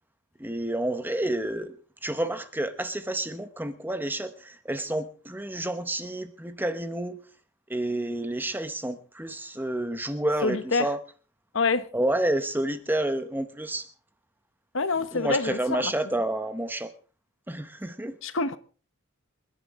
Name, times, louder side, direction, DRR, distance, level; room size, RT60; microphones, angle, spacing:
voice 1, 0.4-1.7 2.0-7.2 7.7-11.0 11.9-13.9 15.1-16.9 17.5-18.2, right 1 dB, 10° right, 0.8 m, -29 dB
voice 2, 10.4-10.9 11.5-11.9 14.7-15.9 18.2-18.6, left 3 dB, 60° left, 1.0 m, -26 dB
27.5 x 10.5 x 3.7 m
head